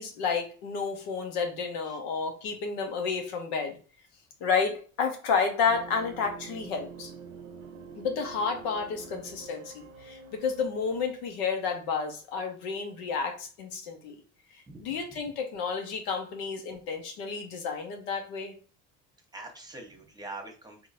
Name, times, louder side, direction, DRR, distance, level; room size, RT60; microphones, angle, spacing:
voice 1, 0.0-3.7 4.4-7.1 8.0-14.1 14.8-18.5, left 5 dB, 80° left, 4 dB, 0.9 m, -31 dB
sound 1, 5.7-11.4, right 5 dB, 80° right, 0.7 m, -46 dB
voice 2, 14.7-15.0 19.3-20.9, right 2 dB, 10° right, 2 dB, 1.1 m, -43 dB
3.8 x 2.9 x 2.5 m, 0.38 s
supercardioid pair, 85°, 32 cm